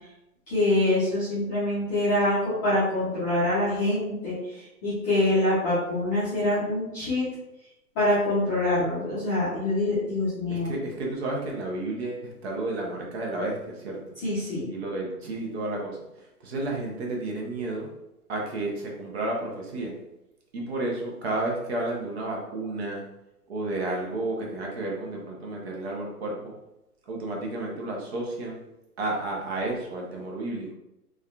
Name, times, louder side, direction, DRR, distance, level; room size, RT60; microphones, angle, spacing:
voice 1, 0.5-7.3 7.9-10.8 14.2-14.7, left 1 dB, 10° left, -12 dB, 0.5 m, -25 dB
voice 2, 10.5-14.0 14.7-16.0 16.4-17.9 18.3-20.0 20.5-23.0 23.5-26.5 27.1-28.6 29.0-30.7, right 2 dB, 45° right, -1 dB, 0.7 m, -31 dB
3.4 x 2.2 x 2.3 m, 0.92 s
hypercardioid pair, 140°, 47 cm